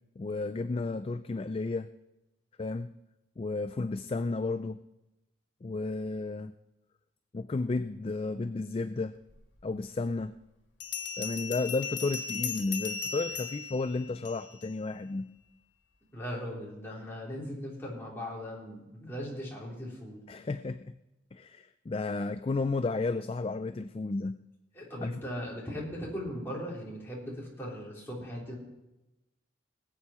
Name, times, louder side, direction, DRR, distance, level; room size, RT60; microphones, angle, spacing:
voice 1, 0.2-1.9 2.6-2.9 3.4-4.8 5.6-6.5 7.3-9.2 9.6-10.3 11.2-15.3 20.3-20.9 21.3-24.4 25.0-25.1, left 3 dB, 30° left, 11 dB, 0.3 m, -32 dB
Bell, 9.6-9.7 10.8-14.7, left 6 dB, 80° left, 1.6 m, -37 dB
voice 2, 16.1-20.2 24.7-28.6, equal, 10° left, -5 dB, 3.5 m, -39 dB
20.0 x 8.6 x 4.3 m, 0.97 s
head